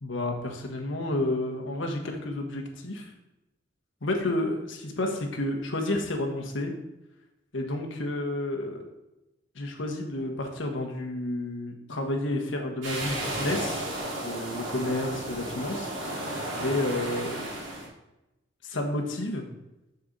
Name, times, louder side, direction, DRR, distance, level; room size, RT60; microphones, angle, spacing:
voice 1, 0.0-3.1 4.0-6.7 7.5-8.9 9.5-13.8 14.2-15.9 16.2-17.5 18.6-19.5, left 1 dB, 80° left, 2 dB, 1.4 m, -31 dB
sound 1, 12.8-17.9, right 1 dB, 85° right, 2.5 m, -33 dB
6.9 x 6.7 x 4.1 m, 0.94 s
head